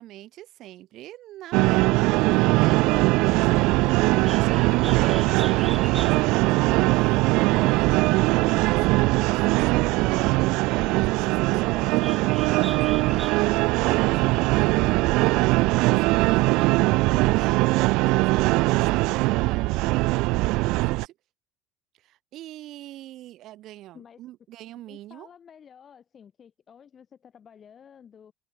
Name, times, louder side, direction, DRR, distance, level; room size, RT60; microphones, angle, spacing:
voice 1, 0.0-10.2 10.7-16.7 17.3-21.1 21.9-25.3, right 14 dB, 50° right, 3.5 m, -43 dB
sound 1, 1.5-21.0, right 22 dB, 70° right, 0.8 m, -21 dB
Bird, 4.1-13.6, right 4 dB, 15° right, 1.7 m, -44 dB
voice 2, 24.9-28.3, left 7 dB, 30° left, 6.5 m, -51 dB
cardioid pair, 160°, 0 cm